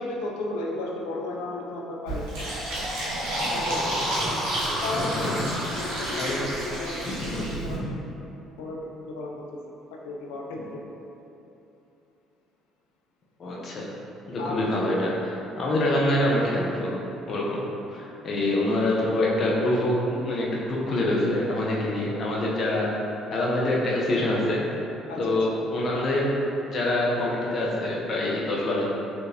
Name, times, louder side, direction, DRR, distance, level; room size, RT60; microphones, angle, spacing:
voice 1, 0.0-2.7 3.5-3.9 4.7-8.0 8.6-9.6 9.9-10.8 14.4-14.7 15.9-16.0 25.1-25.6, left 2 dB, 90° left, -1 dB, 0.5 m, -34 dB
Fill (with liquid), 2.1-7.8, right 1 dB, 85° right, 1.2 m, -29 dB
voice 2, 4.9-5.4 6.2-6.4 7.0-7.9 13.4-13.9 14.3-17.0 17.3-17.6 17.9-23.0 23.3-24.7 25.2-26.3 26.6-28.9, left 1 dB, 50° left, -4 dB, 0.8 m, -26 dB
4.4 x 3.1 x 2.9 m, 2.9 s
supercardioid pair, 75°, 0 cm